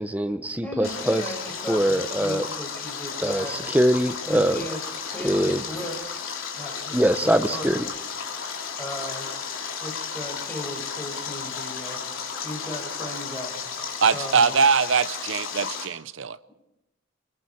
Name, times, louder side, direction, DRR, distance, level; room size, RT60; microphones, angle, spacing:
voice 1, 0.0-1.2 1.7-2.5 3.2-4.6 5.2-5.6 6.9-7.9, equal, 5° right, 0.7 m, -23 dB
voice 2, 0.6-3.7 4.3-6.0 6.6-7.8 8.8-9.3 9.8-12.0 12.4-13.6 14.1-14.5, equal, 10° left, 5.4 m, -36 dB
Stream, 0.8-15.9, left 6 dB, 80° left, 3.1 m, -33 dB
voice 3, 14.0-16.4, right 5 dB, 65° right, 0.7 m, -22 dB
29.5 x 21.0 x 4.5 m
head